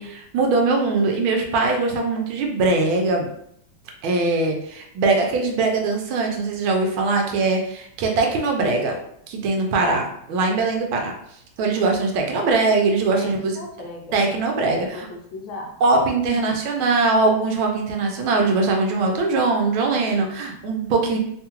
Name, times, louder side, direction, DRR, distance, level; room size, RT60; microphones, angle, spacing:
voice 1, 0.0-3.3 4.0-9.0 9.3-11.1 11.6-13.5 14.1-15.1 15.8-21.2, right 3 dB, 80° right, 2 dB, 1.4 m, -21 dB
voice 2, 13.1-14.3 14.9-15.8 16.3-16.4, left 2 dB, 70° left, -1 dB, 1.3 m, -37 dB
3.6 x 2.3 x 2.9 m, 0.71 s
omnidirectional pair, 2.3 m